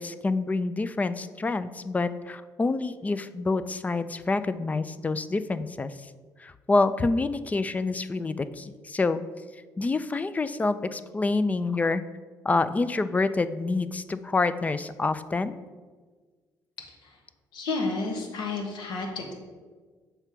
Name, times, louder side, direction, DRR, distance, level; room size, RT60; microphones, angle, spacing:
voice 1, 0.0-6.1 6.4-9.2 9.8-12.0 12.4-15.6, left 3 dB, 20° left, 13 dB, 0.3 m, -27 dB
voice 2, 17.5-19.3, left 3 dB, 75° left, 2 dB, 1.4 m, -31 dB
7.2 x 3.4 x 6.0 m, 1.4 s
cardioid pair, 100°, 8 cm